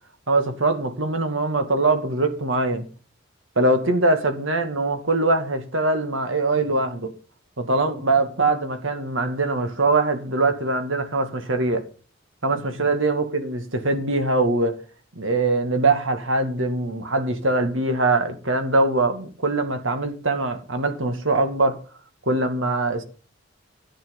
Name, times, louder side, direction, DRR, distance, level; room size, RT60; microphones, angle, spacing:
voice 1, 0.3-2.9 3.6-7.1 7.6-11.8 12.4-14.8 15.2-21.8 22.3-23.0, right 2 dB, 80° right, 2.2 m, -22 dB
11.0 x 9.0 x 5.4 m
head